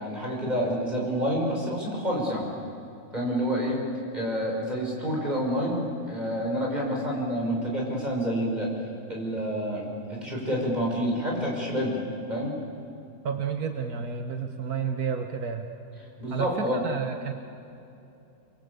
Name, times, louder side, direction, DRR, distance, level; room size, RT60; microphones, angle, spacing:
voice 1, 0.0-2.5 3.1-3.8 4.1-8.7 9.1-12.0 12.3-12.5 16.2-16.8, equal, 30° right, -2 dB, 6.5 m, -28 dB
voice 2, 13.2-15.7 16.3-17.3, right 6 dB, 80° right, 5 dB, 1.9 m, -31 dB
29.0 x 22.5 x 8.5 m, 2.8 s
omnidirectional pair, 1.6 m